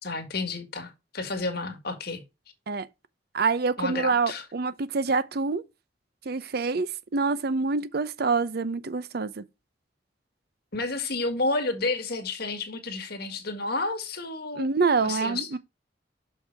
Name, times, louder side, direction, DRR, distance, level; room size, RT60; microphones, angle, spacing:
voice 1, 0.0-2.2 3.8-4.4 10.7-14.7 15.0-15.5, left 3 dB, 60° left, 1.9 m, -31 dB
voice 2, 3.3-5.6 6.3-9.4 14.6-15.6, right 4 dB, 60° right, 0.7 m, -26 dB
6.4 x 5.5 x 4.6 m
head